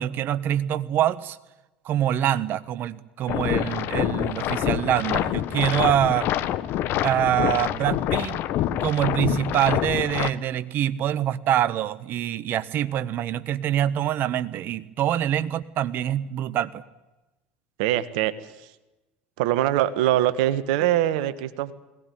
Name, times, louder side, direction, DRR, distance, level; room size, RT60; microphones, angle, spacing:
voice 1, 0.0-1.4 1.8-6.3 7.0-8.4 8.8-16.8, right 11 dB, 50° right, 14 dB, 1.4 m, -25 dB
sound 1, 3.3-10.3, left 12 dB, 55° left, 1.3 m, -26 dB
voice 2, 17.8-18.3 18.6-18.7 19.4-21.7, right 13 dB, 70° right, 13 dB, 1.5 m, -23 dB
21.5 x 18.5 x 9.6 m, 1.0 s
hypercardioid pair, 80°, 4 cm